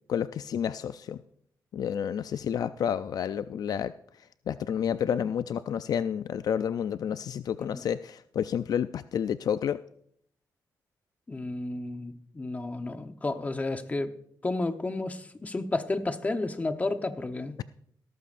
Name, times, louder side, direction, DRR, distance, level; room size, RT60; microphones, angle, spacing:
voice 1, 0.1-1.2 1.7-3.9 4.5-9.8, left 8 dB, 65° left, 13 dB, 0.4 m, -30 dB
voice 2, 11.3-14.1 14.4-17.6, left 2 dB, 20° left, 8 dB, 1.0 m, -31 dB
17.0 x 14.0 x 2.5 m, 0.67 s
cardioid pair, 115°, 7 cm